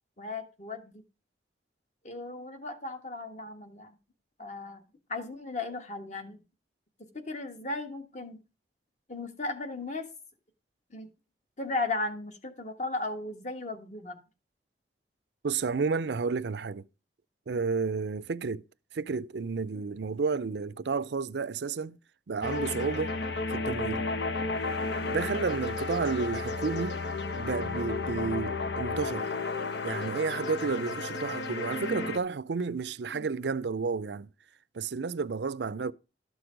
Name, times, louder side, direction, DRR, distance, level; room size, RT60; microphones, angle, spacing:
voice 1, 0.2-1.0 2.0-3.9 4.4-4.8 5.1-6.4 7.0-8.4 9.1-10.1 10.9-11.1 11.6-14.2 24.9-25.3 33.1-33.3, left 3 dB, 40° left, 1.4 m, -36 dB
voice 2, 15.4-16.8 17.5-18.6 18.9-22.0 22.3-23.1 23.5-24.1 25.1-27.0 27.4-29.3 29.8-34.3 34.7-35.9, right 4 dB, 75° right, 0.5 m, -31 dB
sound 1, 22.4-32.2, left 3 dB, 75° left, 0.9 m, -33 dB
12.5 x 6.2 x 5.0 m
head